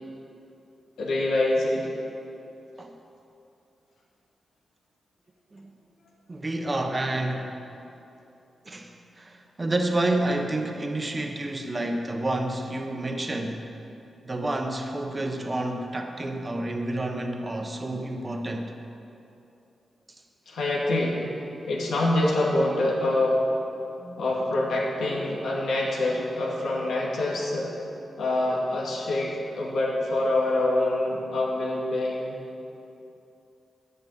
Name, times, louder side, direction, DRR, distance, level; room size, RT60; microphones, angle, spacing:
voice 1, 1.0-1.9 20.5-21.2 21.7-23.5 24.2-27.7 28.2-32.4, left 2 dB, 90° left, -3 dB, 2.1 m, -25 dB
voice 2, 6.3-7.5 8.6-13.6 14.2-18.7 24.0-24.2 25.2-25.3, right 1 dB, 30° right, 3 dB, 1.0 m, -29 dB
10.5 x 5.7 x 8.6 m, 2.8 s
cardioid pair, 80°, 0 cm